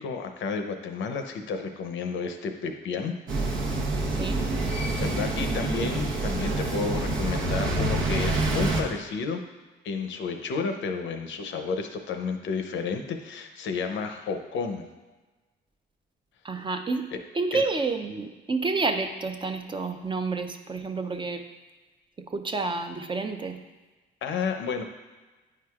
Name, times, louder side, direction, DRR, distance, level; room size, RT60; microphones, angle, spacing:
voice 1, 0.0-3.6 5.0-9.4 9.8-14.9 17.5-17.7 24.2-24.8, left 5 dB, 70° left, 6 dB, 0.6 m, -31 dB
sound 1, 3.3-8.8, right 2 dB, 80° right, 1.0 m, -27 dB
voice 2, 16.4-17.1 17.3-21.4 22.3-23.6, right 3 dB, 25° right, 6 dB, 0.5 m, -29 dB
9.0 x 4.7 x 2.4 m, 1.2 s
cardioid pair, 90°, 20 cm